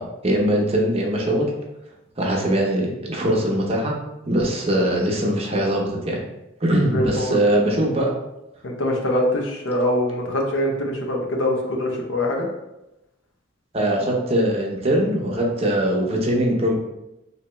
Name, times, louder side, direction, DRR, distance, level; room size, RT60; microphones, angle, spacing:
voice 1, 0.0-1.5 2.2-3.9 4.2-6.2 6.6-8.1 13.7-16.7, right 1 dB, 30° right, -2 dB, 0.7 m, -21 dB
voice 2, 6.9-7.4 8.6-12.5, left 1 dB, 75° left, 1 dB, 0.7 m, -23 dB
3.2 x 2.8 x 3.0 m, 0.93 s
head